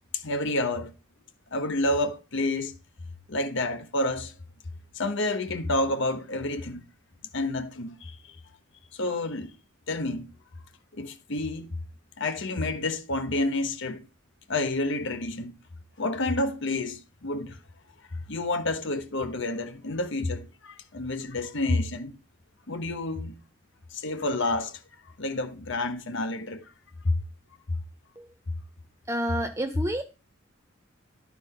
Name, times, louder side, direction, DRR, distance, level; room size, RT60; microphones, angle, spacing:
voice 1, 0.1-0.9 1.5-2.7 3.3-4.3 4.9-6.8 7.3-8.4 8.9-9.5 9.9-10.3 10.9-11.7 12.2-14.0 14.5-15.5 16.0-17.6 18.3-22.2 22.7-23.4 23.9-24.8 25.2-26.6 27.0-27.1, left 2 dB, 60° left, 1.2 m, -29 dB
voice 2, 29.1-30.0, right 1 dB, 15° right, 0.6 m, -29 dB
11.5 x 4.4 x 5.5 m
head